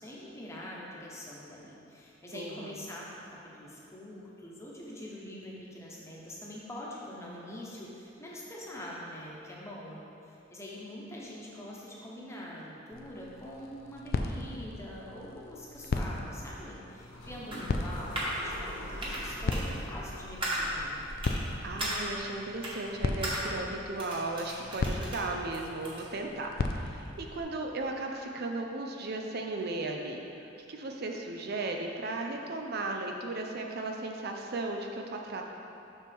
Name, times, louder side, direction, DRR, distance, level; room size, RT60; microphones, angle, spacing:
voice 1, 0.0-21.0, left 1 dB, 15° left, -5 dB, 1.1 m, -44 dB
voice 2, 2.3-2.7 21.6-35.4, right 2 dB, 55° right, 2 dB, 0.5 m, -36 dB
sound 1, 12.9-27.4, left 2 dB, 55° left, 0.4 m, -37 dB
sound 2, 17.0-22.2, left 1 dB, 75° left, 0.9 m, -45 dB
sound 3, 17.5-18.4 19.0-19.2 19.5-19.6 20.4-20.6 21.2-21.3 21.8-22.0 22.6-22.7 23.2-23.4 24.0-25.2 25.5-26.0, right 1 dB, 25° right, 1.4 m, -35 dB
7.3 x 5.9 x 3.5 m, 2.8 s
head